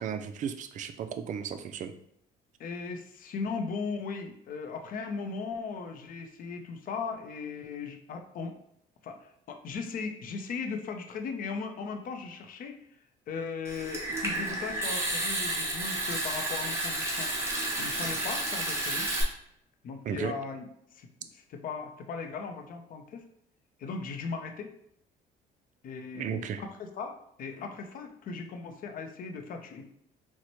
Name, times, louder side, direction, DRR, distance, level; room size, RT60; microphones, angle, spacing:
voice 1, 0.0-1.9 20.0-20.3 26.1-26.6, right 8 dB, 50° right, 9 dB, 0.4 m, -35 dB
voice 2, 2.6-8.6 9.0-12.8 13.3-17.3 17.8-19.1 19.8-21.1 21.3-23.2 23.8-24.7 25.8-29.9, left 5 dB, 55° left, 5 dB, 0.5 m, -38 dB
Water tap faucet / Sink (filling or washing) / Trickle dribble, 13.6-19.2, right 1 dB, 15° right, 0.8 m, -31 dB
4.1 x 2.1 x 3.0 m, 0.71 s
cardioid pair, 110°, 17 cm